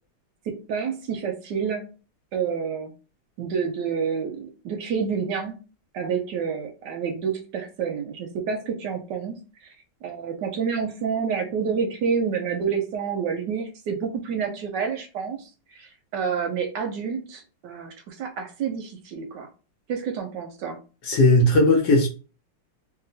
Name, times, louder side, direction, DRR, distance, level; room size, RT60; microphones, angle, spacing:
voice 1, 0.5-1.9 2.3-2.9 3.4-5.6 5.9-9.4 10.0-15.5 15.8-19.5 19.9-20.8, right 6 dB, 70° right, 1.1 m, -28 dB
voice 2, 21.0-22.1, left 1 dB, 65° left, 1.2 m, -17 dB
3.0 x 2.9 x 2.6 m
omnidirectional pair, 2.1 m